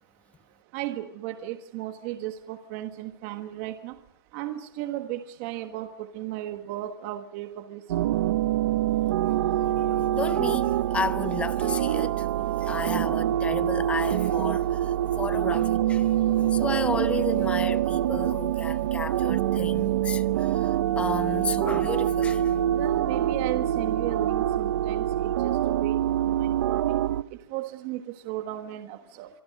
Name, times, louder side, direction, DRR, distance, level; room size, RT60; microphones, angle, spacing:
voice 1, 0.7-3.9 4.3-7.8 22.7-27.0 27.5-29.3, right 14 dB, 35° right, 1.4 m, -35 dB
sound 1, 7.9-27.2, right 12 dB, 60° right, 0.9 m, -25 dB
voice 2, 9.6-12.3 12.6-16.1 16.4-22.5, left 5 dB, 10° left, 1.0 m, -33 dB
26.0 x 25.0 x 6.6 m
hypercardioid pair, 150°, 12 cm